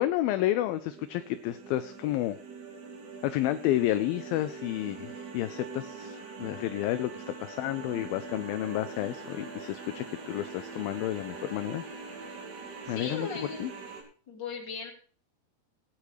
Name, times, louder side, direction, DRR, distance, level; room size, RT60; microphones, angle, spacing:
voice 1, 0.0-2.4 3.2-11.8 12.9-13.7, left 14 dB, 80° left, 11 dB, 2.3 m, -31 dB
sound 1, 0.7-14.0, right 4 dB, 90° right, 4.7 m, -43 dB
voice 2, 12.8-13.7 14.3-14.9, left 5 dB, 30° left, 0 dB, 3.2 m, -37 dB
19.0 x 9.8 x 3.1 m, 0.41 s
omnidirectional pair, 4.5 m